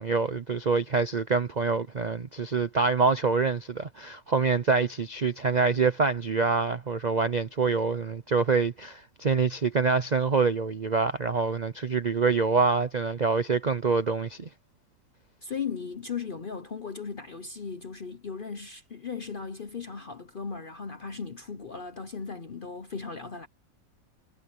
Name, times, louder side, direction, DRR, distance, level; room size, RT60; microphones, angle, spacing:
voice 1, 0.0-14.5, right 4 dB, 85° right, 0.3 m, -26 dB
voice 2, 15.4-23.5, left 5 dB, 50° left, 0.6 m, -37 dB
omnidirectional pair, 1.9 m